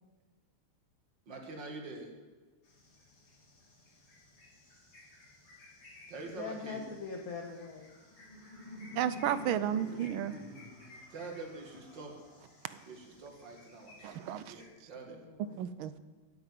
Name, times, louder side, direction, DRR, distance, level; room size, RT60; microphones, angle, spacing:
voice 1, 1.3-2.1 6.1-6.8 11.1-12.2 12.8-15.2, right 3 dB, 55° right, 2 dB, 2.5 m, -45 dB
sound 1, 2.6-14.7, left 2 dB, 85° left, 3.8 m, -59 dB
voice 2, 6.3-7.9 9.5-9.6 15.1-15.6, left 5 dB, 50° left, 2 dB, 1.3 m, -42 dB
Laughter, 7.8-12.8, left 1 dB, 30° right, 2.3 m, -48 dB
voice 3, 9.0-10.4 12.7-12.8 14.0-14.5 15.6-16.0, right 10 dB, 80° right, 14 dB, 1.4 m, -33 dB
8.9 x 8.8 x 9.2 m, 1.3 s
omnidirectional pair, 2.4 m